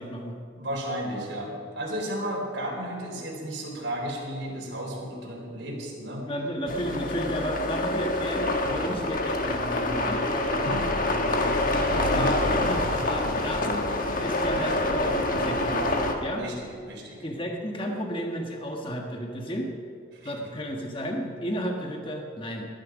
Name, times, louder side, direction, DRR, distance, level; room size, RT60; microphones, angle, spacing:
voice 1, 0.0-0.4 6.3-10.2 11.9-15.8 16.2-16.4 17.2-19.7 20.2-22.7, equal, 25° left, 1 dB, 1.4 m, -32 dB
voice 2, 0.5-6.2 10.5-10.9 12.0-12.3 16.4-17.2 20.1-20.5, equal, 60° right, -3 dB, 4.5 m, -33 dB
sound 1, 6.7-16.1, left 1 dB, 45° left, 1.3 m, -26 dB
20.0 x 11.0 x 5.1 m, 2.4 s
head